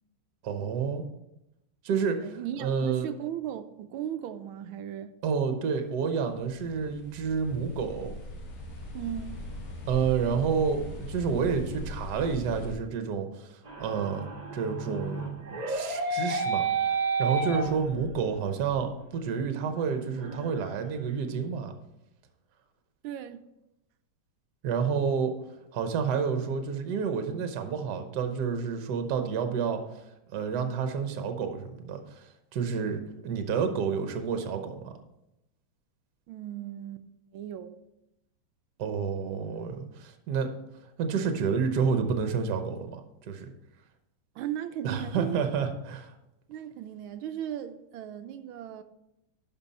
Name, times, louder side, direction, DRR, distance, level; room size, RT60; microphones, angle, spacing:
voice 1, 0.4-1.0 1.8-2.2 2.6-3.1 5.2-8.1 9.9-14.3 14.5-16.6 17.2-21.7 24.6-25.3 25.7-29.8 30.3-34.9 38.8-40.5 41.0-43.5 44.8-46.1, right 6 dB, 55° right, 1.4 m, -29 dB
voice 2, 2.2-5.1 8.9-9.4 23.0-23.4 36.3-37.1 37.3-37.8 44.3-45.5 46.5-48.8, right 10 dB, 80° right, 1.4 m, -37 dB
sound 1, 6.3-12.7, left 1 dB, 75° left, 2.6 m, -40 dB
sound 2, 13.6-18.3 18.7-18.8 19.3-19.4 19.7-20.9, right 4 dB, 35° right, 0.7 m, -31 dB
11.5 x 5.4 x 4.2 m
omnidirectional pair, 2.3 m